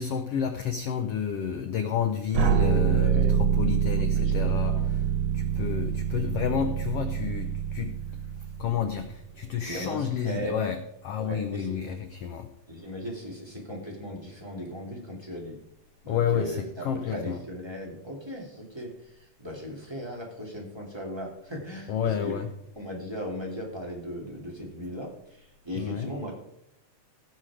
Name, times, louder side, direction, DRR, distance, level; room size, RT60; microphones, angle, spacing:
voice 1, 0.0-5.0 5.3-8.0 8.4-10.8 11.0-12.5 16.1-17.4 21.9-22.5 25.8-26.1, left 8 dB, 85° left, 7 dB, 1.3 m, -30 dB
sound 1, 2.3-9.3, right 8 dB, 75° right, 2.5 m, -26 dB
voice 2, 2.8-3.4 4.1-4.9 6.6-6.8 9.6-10.6 11.2-11.9 12.7-15.6 16.0-22.4 22.8-26.3, equal, 10° right, -2 dB, 2.4 m, -38 dB
17.0 x 6.5 x 4.9 m, 0.77 s
omnidirectional pair, 3.7 m